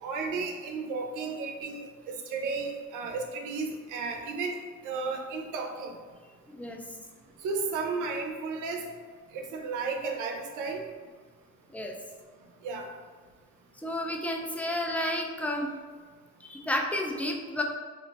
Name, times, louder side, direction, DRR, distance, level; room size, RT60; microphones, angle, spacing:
voice 1, 0.0-4.6 4.8-5.9 7.4-8.9 9.3-10.8 12.6-12.9, right 4 dB, 90° right, 3 dB, 0.5 m, -33 dB
voice 2, 6.5-6.8 11.7-11.9 13.8-15.7 16.4-17.6, left 1 dB, 5° left, 1 dB, 0.3 m, -31 dB
2.5 x 2.1 x 3.9 m, 1.5 s
cardioid pair, 90°, 30 cm